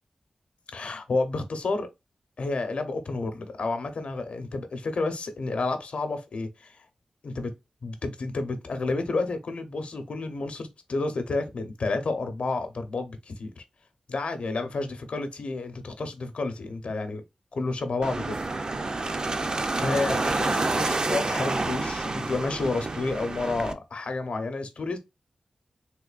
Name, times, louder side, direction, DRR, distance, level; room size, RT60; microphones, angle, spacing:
voice 1, 0.7-1.9 2.4-6.8 7.2-7.5 7.8-13.6 14.1-17.2 17.5-18.4 19.8-25.0, left 3 dB, 75° left, 0.7 m, -30 dB
sound 1, 18.0-23.7, right 2 dB, 40° right, 0.4 m, -28 dB
3.6 x 2.9 x 2.4 m
wide cardioid pair, 75°, 2 cm